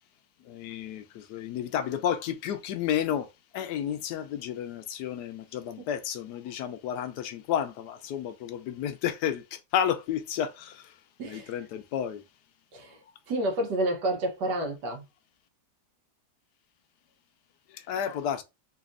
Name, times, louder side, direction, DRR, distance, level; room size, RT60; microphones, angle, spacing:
voice 1, 0.4-3.3 3.5-10.9 11.2-12.2 17.7-18.4, left 9 dB, 80° left, 1.2 m, -31 dB
voice 2, 11.2-11.5 12.7-13.0 13.3-15.0, right 1 dB, 85° right, 1.6 m, -29 dB
4.1 x 2.6 x 2.5 m
omnidirectional pair, 1.8 m